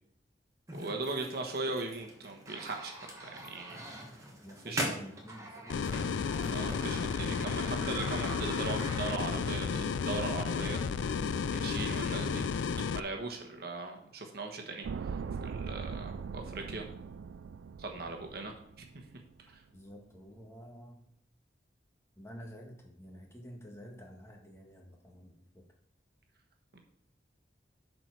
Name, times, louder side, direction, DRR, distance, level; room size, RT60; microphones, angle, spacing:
sound 1, 0.7-9.5, right 1 dB, 15° right, 1.5 m, -42 dB
voice 1, 0.7-3.8 4.6-4.8 6.5-10.8 11.5-12.5 12.9-16.9 17.8-18.8 19.5-19.6 26.7-26.8, right 3 dB, 55° right, 3 dB, 1.2 m, -39 dB
voice 2, 3.7-4.1 4.4-6.4 17.9-18.1 19.7-21.0 22.1-25.6, equal, 15° left, 1 dB, 1.4 m, -50 dB
sound 2, 5.7-13.0, left 5 dB, 85° left, 0.4 m, -32 dB
sound 3, 14.8-19.1 19.4-19.5, right 5 dB, 90° right, 0.4 m, -40 dB
11.5 x 4.5 x 4.7 m, 0.74 s
head